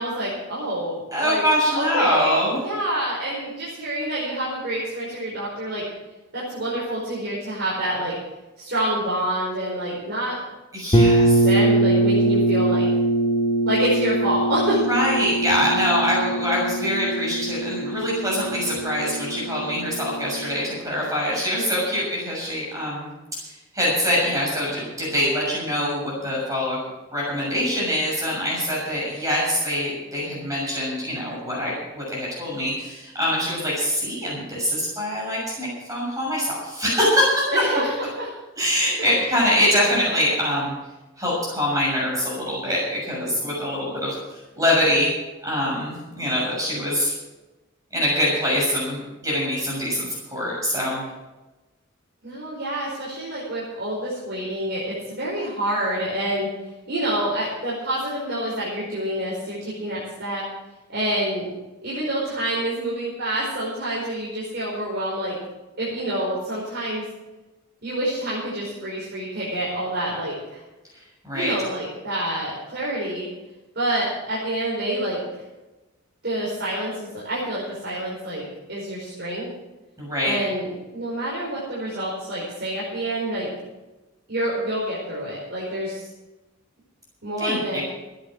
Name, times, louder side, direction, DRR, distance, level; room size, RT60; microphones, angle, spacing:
voice 1, 0.0-1.4 1.7-5.8 6.3-8.1 8.6-10.4 11.4-12.9 13.6-14.8 37.5-38.3 39.0-39.3 52.2-56.5 56.9-60.4 60.9-61.4 61.8-65.3 65.8-67.0 67.8-70.6 71.3-73.3 73.7-75.2 76.2-79.5 80.2-83.5 84.3-86.1 87.2-87.8, right 1 dB, 50° right, -6 dB, 5.0 m, -27 dB
voice 2, 1.1-2.6 10.7-11.5 14.9-26.8 27.1-37.4 38.6-40.7 41.2-45.1 45.4-47.1 47.9-51.0 71.2-71.5 80.0-80.4 87.4-87.8, equal, 15° right, -4 dB, 6.7 m, -24 dB
sound 1, 10.9-20.6, right 1 dB, 25° left, 2.0 m, -22 dB
15.5 x 10.5 x 6.3 m, 1.1 s
head